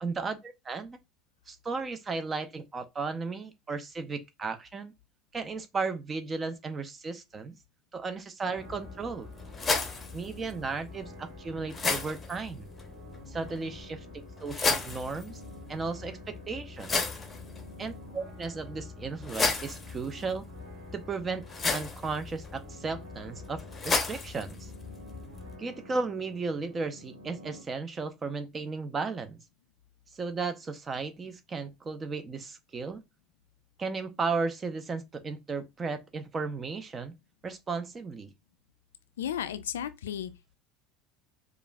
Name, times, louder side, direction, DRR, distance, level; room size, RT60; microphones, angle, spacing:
voice 1, 0.0-1.0 1.5-4.9 5.3-7.6 7.9-9.3 10.1-12.7 13.3-14.0 14.4-15.4 15.7-17.0 17.8-20.5 20.9-21.4 21.7-24.7 25.6-29.4 30.1-33.0 33.8-37.1 37.4-38.3, right 4 dB, 25° right, 0.6 m, -35 dB
sound 1, 8.4-27.6, right 1 dB, 75° right, 1.4 m, -50 dB
sound 2, 8.6-25.6, left 4 dB, 20° left, 0.8 m, -35 dB
voice 2, 39.2-40.5, left 10 dB, 70° left, 0.3 m, -34 dB
4.7 x 2.5 x 2.2 m
figure-of-eight pair, 70°, 0 cm